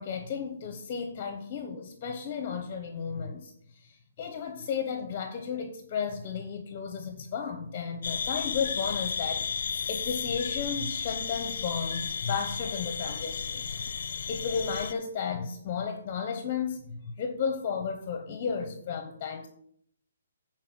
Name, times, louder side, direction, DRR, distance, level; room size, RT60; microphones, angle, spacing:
voice 1, 0.0-19.5, left 6 dB, 30° left, 0.8 m, -34 dB
sound 1, 8.0-14.9, left 6 dB, 60° left, 0.6 m, -33 dB
9.6 x 4.6 x 6.2 m
hypercardioid pair, 165°, 0 cm